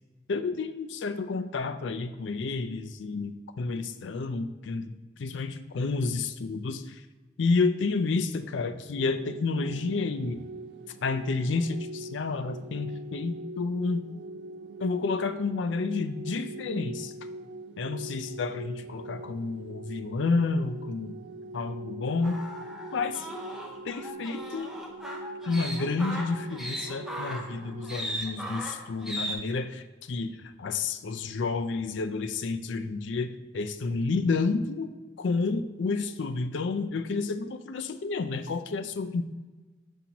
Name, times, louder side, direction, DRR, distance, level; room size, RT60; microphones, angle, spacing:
voice 1, 0.3-4.9 5.2-7.0 7.4-10.4 11.0-14.0 14.8-17.1 17.8-21.1 21.5-22.4 22.9-23.3 23.8-24.7 25.4-33.3 33.5-34.9 35.2-39.2, left 4 dB, 75° left, 10 dB, 0.4 m, -30 dB
sound 1, 8.9-28.0, right 2 dB, 65° right, 0.3 m, -43 dB
sound 2, 22.2-29.4, equal, ahead, 0.6 m, -37 dB
7.2 x 5.4 x 2.9 m, 1.2 s
head